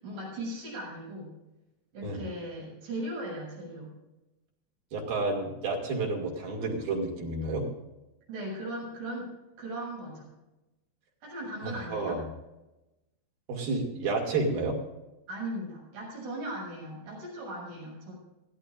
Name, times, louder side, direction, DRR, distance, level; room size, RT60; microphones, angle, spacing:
voice 1, 0.0-1.4 1.9-4.0 8.3-9.3 9.6-10.3 11.2-12.2 15.3-18.2, right 1 dB, 85° right, -3 dB, 9.1 m, -38 dB
voice 2, 4.9-7.7 11.6-12.2 13.5-14.8, right 3 dB, 55° right, 0 dB, 4.1 m, -30 dB
21.0 x 15.5 x 2.6 m, 0.99 s
omnidirectional pair, 5.1 m